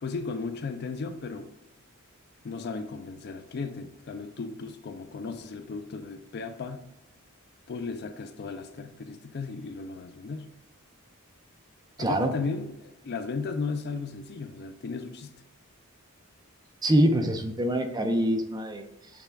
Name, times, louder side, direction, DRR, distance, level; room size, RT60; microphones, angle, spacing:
voice 1, 0.0-1.5 2.4-6.9 7.7-10.5 12.0-15.3, left 4 dB, 50° left, 0.4 m, -35 dB
voice 2, 12.0-12.3 16.8-18.8, equal, 20° right, 0.4 m, -24 dB
6.8 x 2.3 x 3.4 m
head